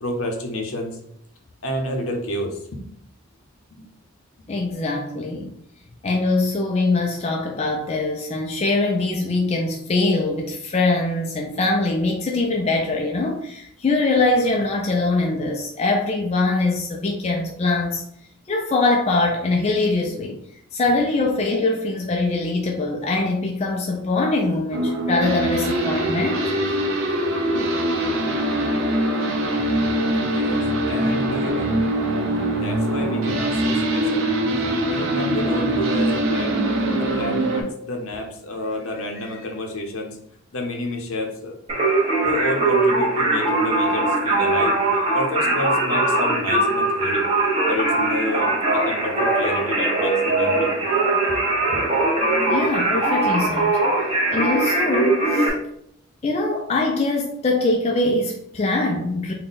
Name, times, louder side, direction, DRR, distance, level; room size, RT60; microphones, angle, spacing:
voice 1, 0.0-1.0 1.6-2.8 3.8-3.9 21.2-21.3 28.5-28.7 30.2-31.7 32.5-34.3 34.9-36.6 36.9-40.2 40.5-41.8 42.2-44.8 45.1-47.2 47.7-50.7 51.3-51.4 51.7-51.8, left 1 dB, 75° left, 0.8 m, -30 dB
voice 2, 4.5-5.6 6.0-18.0 18.5-20.4 20.7-26.5 52.4-53.8 54.3-55.5 56.2-59.3, left 2 dB, 30° left, 0.3 m, -22 dB
sound 1, 24.7-37.6, right 1 dB, 70° right, 0.7 m, -23 dB
Singing, 41.7-55.5, right 2 dB, 25° right, 0.8 m, -21 dB
3.6 x 2.2 x 3.9 m
head